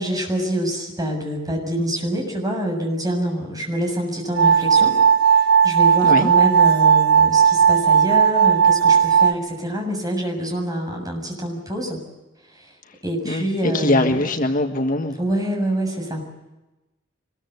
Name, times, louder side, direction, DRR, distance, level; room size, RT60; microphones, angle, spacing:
voice 1, 0.0-5.0 5.2-12.0 12.5-12.7 13.0-14.2 15.2-16.2, equal, 20° right, 2 dB, 7.0 m, -26 dB
sound 1, 4.3-9.3, right 7 dB, 60° right, 0.9 m, -15 dB
voice 2, 13.2-15.2, left 2 dB, 45° left, 5 dB, 1.6 m, -22 dB
24.5 x 21.5 x 8.1 m, 1.0 s
head